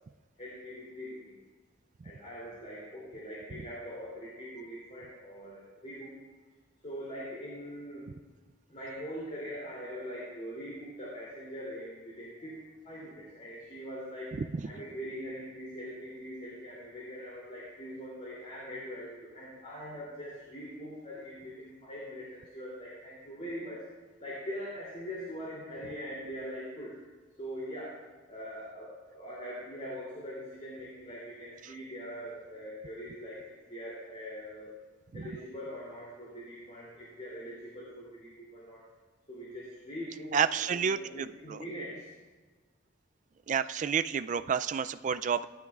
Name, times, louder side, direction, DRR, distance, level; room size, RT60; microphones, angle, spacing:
voice 1, 0.4-1.3 2.0-6.2 6.8-8.1 8.7-14.3 14.6-23.8 24.2-27.0 27.4-28.0 28.3-34.7 35.1-38.8 39.3-42.1, equal, 35° left, -6 dB, 2.9 m, -42 dB
voice 2, 40.3-41.6 43.5-45.5, right 7 dB, 40° right, 13 dB, 0.3 m, -30 dB
18.0 x 11.5 x 2.4 m, 1.2 s
head